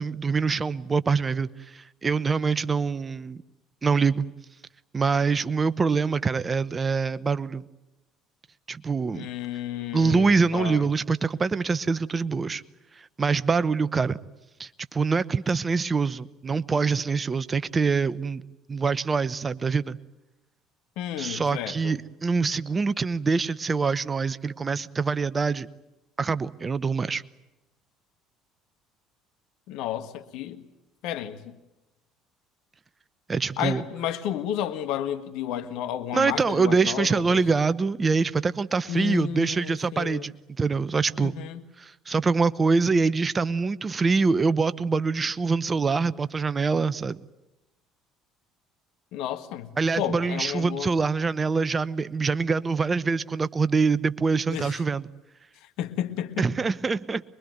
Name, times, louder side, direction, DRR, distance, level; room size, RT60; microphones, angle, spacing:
voice 1, 0.0-3.4 3.8-4.3 4.9-7.6 8.7-9.3 9.9-12.6 13.0-14.2 14.6-18.4 18.7-20.0 21.2-25.7 26.2-27.2 33.3-33.8 36.1-41.3 41.8-47.2 49.8-55.1 56.4-57.2, right 4 dB, 30° right, 0.9 m, -25 dB
voice 2, 9.1-10.9 21.0-21.9 29.7-30.6 31.0-31.5 33.6-37.4 38.9-40.2 41.2-41.6 49.1-50.9 54.5-54.8 55.8-56.5, left 10 dB, 65° left, 1.7 m, -32 dB
24.0 x 22.5 x 9.5 m
hypercardioid pair, 60°, 0 cm